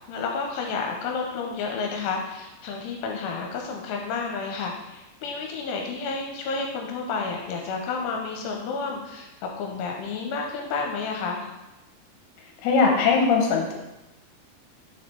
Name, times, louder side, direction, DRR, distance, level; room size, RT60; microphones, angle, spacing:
voice 1, 0.1-11.5, left 4 dB, 85° left, 1 dB, 3.1 m, -31 dB
voice 2, 12.6-13.7, left 4 dB, 70° left, 0 dB, 2.7 m, -20 dB
6.9 x 4.3 x 4.5 m, 0.98 s
omnidirectional pair, 5.6 m